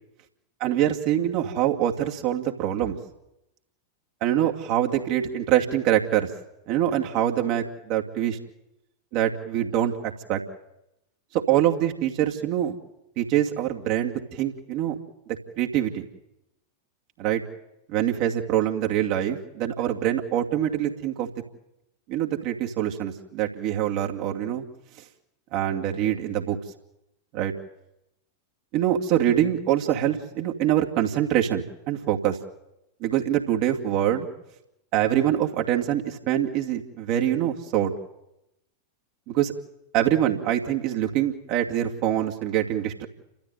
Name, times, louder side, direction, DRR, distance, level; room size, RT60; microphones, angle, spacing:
voice 1, 0.6-3.0 4.2-6.3 6.7-8.4 9.1-10.0 10.3-10.4 11.3-12.8 13.2-15.0 15.3-16.0 17.2-17.4 17.9-21.3 22.1-24.6 25.5-26.6 27.3-27.5 28.7-32.4 33.0-34.3 34.9-37.9 39.3-39.5 39.9-43.1, right 11 dB, 45° right, 2 dB, 2.5 m, -24 dB
30.0 x 14.0 x 9.4 m, 0.90 s
figure-of-eight pair, 90°, 0 cm